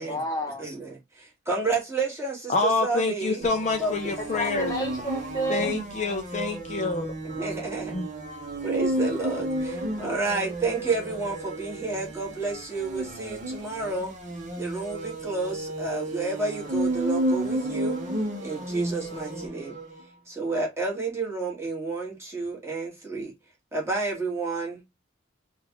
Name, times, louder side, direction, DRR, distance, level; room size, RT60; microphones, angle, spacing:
voice 1, 0.0-0.6 4.2-5.7, right 1 dB, 20° left, 0.9 m, -30 dB
voice 2, 0.6-3.5 3.8-4.1 7.2-7.9 8.6-14.1 14.6-18.0 18.4-19.8 20.3-23.3 23.7-24.8, right 3 dB, 15° right, 1.5 m, -30 dB
voice 3, 2.5-4.7 5.5-7.1 7.9-8.1, left 3 dB, 40° left, 0.4 m, -27 dB
sound 1, 3.4-20.0, right 1 dB, 40° right, 0.9 m, -32 dB
3.7 x 2.4 x 2.9 m
head